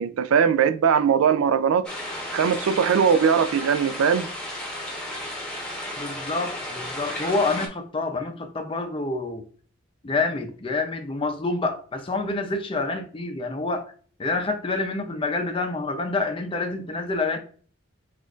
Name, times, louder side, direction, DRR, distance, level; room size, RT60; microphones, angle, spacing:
voice 1, 0.0-1.9 2.3-4.3, right 7 dB, 75° right, 0.3 m, -20 dB
sound 1, 1.8-7.7, left 1 dB, 5° left, 1.0 m, -33 dB
voice 2, 6.0-9.4 10.0-13.9 14.2-17.4, left 3 dB, 25° left, 0.5 m, -27 dB
6.3 x 2.5 x 2.4 m
head